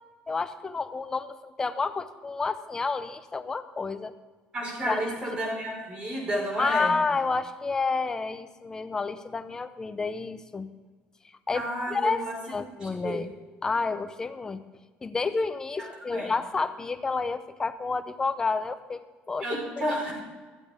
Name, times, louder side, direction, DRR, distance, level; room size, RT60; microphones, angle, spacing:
voice 1, 0.3-4.1 4.9-5.0 6.6-10.7 11.2-12.2 12.5-13.3 13.6-14.6 15.0-19.5 19.9-20.1, left 4 dB, 15° left, 10 dB, 0.7 m, -30 dB
voice 2, 4.5-6.9 11.5-12.3 12.8-13.2 16.1-16.3 19.4-20.1, right 1 dB, 30° right, 0 dB, 4.7 m, -31 dB
15.5 x 13.5 x 3.6 m, 1.3 s
cardioid pair, 155°, 4 cm